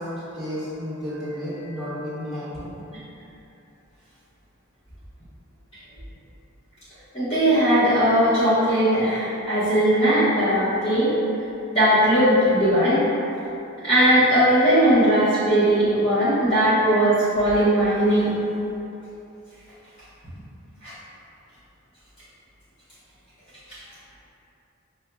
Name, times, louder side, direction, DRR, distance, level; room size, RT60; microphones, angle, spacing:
voice 1, 0.0-2.7, equal, ahead, -15 dB, 1.4 m, -32 dB
voice 2, 7.1-11.1 11.7-13.0 13.8-18.3 20.8-20.9, right 1 dB, 25° left, -15 dB, 1.1 m, -19 dB
5.6 x 2.7 x 2.2 m, 2.8 s
head